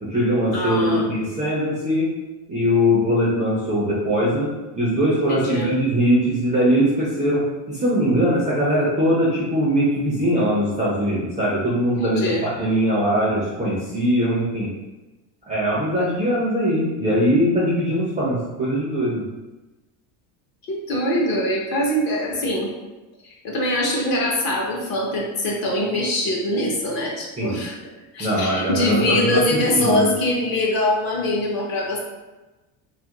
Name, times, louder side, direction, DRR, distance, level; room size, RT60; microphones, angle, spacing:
voice 1, 0.0-2.1 2.5-14.7 15.5-19.2 27.4-27.5 28.2-30.1, equal, 15° right, -7 dB, 0.4 m, -21 dB
voice 2, 0.5-1.0 5.3-5.7 12.0-12.4 20.7-22.7 23.2-27.8 28.1-32.0, left 1 dB, 45° left, -2 dB, 0.8 m, -23 dB
2.8 x 2.4 x 2.8 m, 1.1 s
cardioid pair, 135°, 49 cm